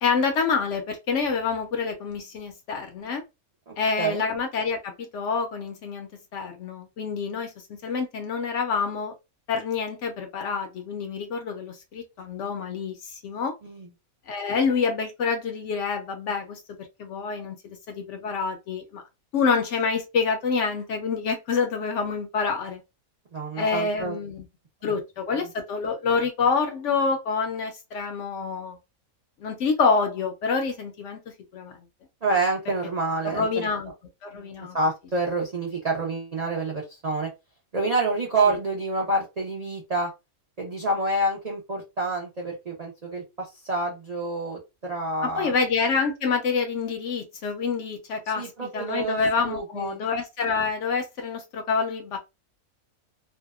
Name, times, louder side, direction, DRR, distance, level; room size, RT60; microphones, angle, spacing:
voice 1, 0.0-3.2 3.8-7.5 7.8-9.1 9.5-13.5 14.3-16.6 17.0-19.0 19.3-22.8 23.5-24.5 24.8-28.8 29.4-31.2 31.5-31.8 33.2-33.9 34.2-34.8 38.5-38.6 45.2-52.2, left 5 dB, 65° left, 0.8 m, -27 dB
voice 2, 3.7-4.2 13.6-13.9 23.3-24.2 24.9-25.0 32.2-33.7 34.3-37.3 37.7-40.1 40.6-45.5 48.4-50.0, right 2 dB, 60° right, 0.4 m, -28 dB
2.6 x 2.1 x 2.3 m
omnidirectional pair, 1.5 m